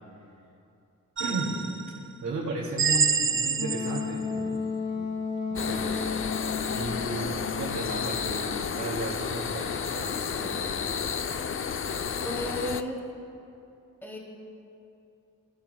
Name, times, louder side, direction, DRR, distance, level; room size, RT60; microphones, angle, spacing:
sound 1, 1.2-2.0 2.8-4.2, right 5 dB, 40° right, 0.6 m, -27 dB
voice 1, 1.2-1.5 2.2-4.6 4.9-5.1 5.5-6.2 6.7-10.7, right 3 dB, 65° right, -6 dB, 2.6 m, -35 dB
Wind instrument woodwind instrument, 3.6-8.4, left 5 dB, 70° left, 1.4 m, -33 dB
sound 2, 5.6-12.8, left 6 dB, 45° left, 0.6 m, -31 dB
voice 2, 12.2-13.0 14.0-14.2, left 1 dB, 5° left, -2 dB, 2.6 m, -33 dB
26.0 x 15.0 x 2.3 m, 2.7 s
cardioid pair, 90°, 31 cm